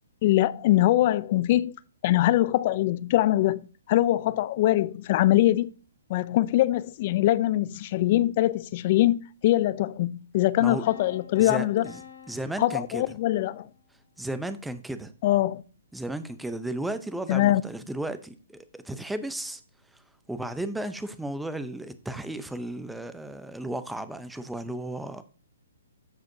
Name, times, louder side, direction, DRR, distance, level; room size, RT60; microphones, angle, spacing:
voice 1, 0.2-1.7 2.0-5.7 6.1-11.9 12.6-13.7 15.2-15.6 17.3-17.6, left 15 dB, 40° left, 0.4 m, -23 dB
sound 1, 10.8-13.7, left 7 dB, 60° left, 2.2 m, -48 dB
voice 2, 11.4-12.0 12.3-13.2 14.2-15.1 15.9-19.6 19.9-20.0 20.3-25.2, right 1 dB, 5° right, 0.7 m, -34 dB
13.5 x 4.9 x 2.7 m
hypercardioid pair, 145°, 0 cm